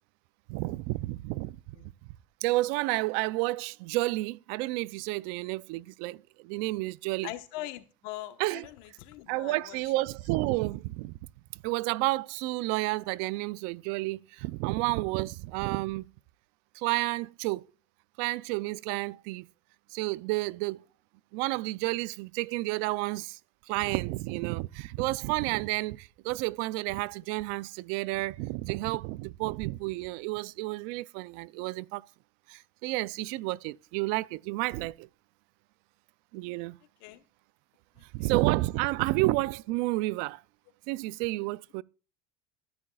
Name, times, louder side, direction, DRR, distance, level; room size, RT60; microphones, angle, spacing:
voice 1, 0.5-1.9 2.4-7.3 8.4-8.7 9.3-11.2 11.5-16.1 16.7-17.6 18.2-19.5 19.9-20.8 21.3-23.4 23.7-32.1 32.5-35.1 36.3-36.8 38.1-40.4 40.9-41.8, right 20 dB, 70° right, 0.4 m, -31 dB
voice 2, 7.2-9.8 37.0-37.2 38.0-38.3, left 15 dB, 70° left, 1.1 m, -42 dB
13.5 x 10.0 x 2.3 m
supercardioid pair, 120°, 16 cm